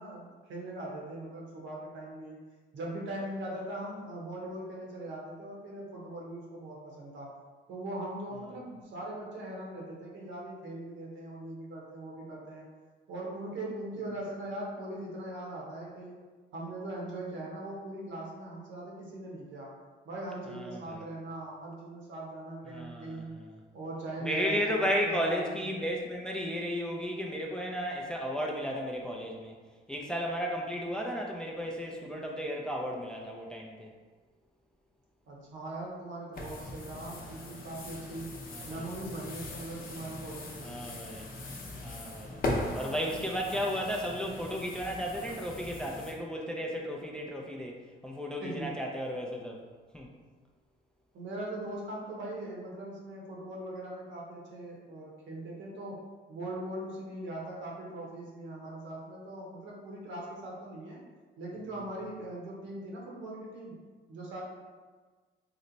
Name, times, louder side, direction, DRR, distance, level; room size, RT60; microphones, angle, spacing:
voice 1, 0.0-2.4 2.7-7.3 7.7-12.6 13.1-16.2 16.5-19.7 20.0-23.4 23.7-25.8 35.3-38.3 38.6-40.7 48.4-48.8 51.1-56.0 56.3-61.0 61.4-63.8 64.1-64.4, right 1 dB, 75° right, -3 dB, 1.0 m, -40 dB
voice 2, 20.5-21.0 22.7-23.5 24.2-29.5 29.9-33.9 38.5-38.9 40.6-41.3 41.8-42.4 42.7-47.8 48.0-49.6 49.9-50.1, equal, 5° left, -1 dB, 0.4 m, -34 dB
sound 1, 36.3-46.1, left 1 dB, 45° left, 0.7 m, -39 dB
3.0 x 2.1 x 3.9 m, 1.4 s
cardioid pair, 90°, 20 cm